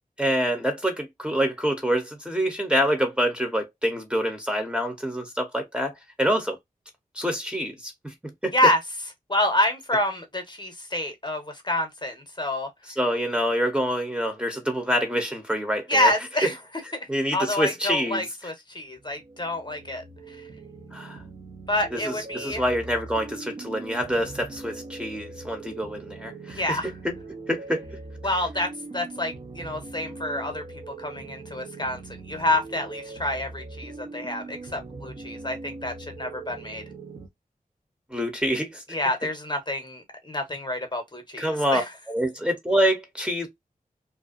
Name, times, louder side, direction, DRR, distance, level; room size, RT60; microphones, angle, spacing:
voice 1, 0.2-5.9 6.2-6.6 7.2-8.1 8.4-8.5 13.0-16.1 17.1-18.2 20.9-21.2 21.9-26.8 27.0-27.1 27.5-27.8 38.1-38.8 41.4-41.8 42.1-43.5, equal, 5° right, 0.8 m, -26 dB
voice 2, 9.3-12.7 15.9-16.6 16.9-17.1 17.3-20.4 21.7-22.6 26.5-26.9 28.2-32.0 32.3-36.8 38.9-41.9, left 1 dB, 30° left, 0.8 m, -28 dB
sound 1, 18.9-37.3, right 3 dB, 40° right, 0.6 m, -41 dB
2.5 x 2.2 x 2.4 m
cardioid pair, 50°, 15 cm